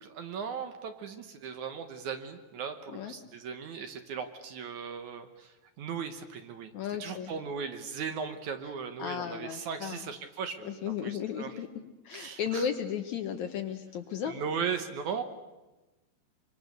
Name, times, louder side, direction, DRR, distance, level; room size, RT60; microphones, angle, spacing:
voice 1, 0.0-6.7 7.0-11.5 12.1-12.7 14.2-15.2, right 6 dB, 65° right, 7 dB, 2.3 m, -37 dB
voice 2, 6.7-7.3 9.0-10.1 10.6-14.4, left 8 dB, 65° left, 6 dB, 2.0 m, -35 dB
25.0 x 24.5 x 6.7 m, 1.1 s
omnidirectional pair, 4.2 m